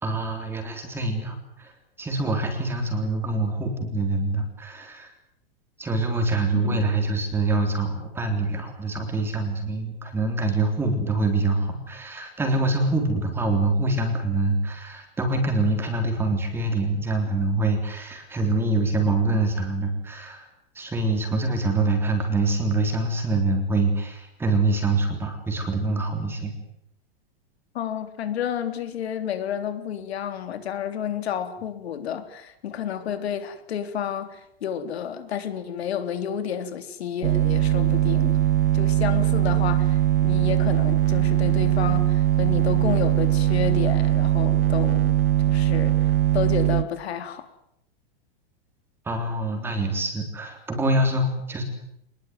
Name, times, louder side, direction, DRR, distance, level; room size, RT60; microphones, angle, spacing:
voice 1, 0.0-1.7 2.0-5.1 5.8-20.4 20.8-26.5 49.1-51.6, right 2 dB, 5° right, 3 dB, 3.7 m, -25 dB
voice 2, 27.7-38.4 38.7-45.1 45.5-47.5, left 8 dB, 85° left, 9 dB, 3.6 m, -30 dB
sound 1, 37.2-46.8, right 13 dB, 60° right, 1.5 m, -21 dB
24.5 x 21.0 x 9.5 m, 0.77 s
supercardioid pair, 175°, 31 cm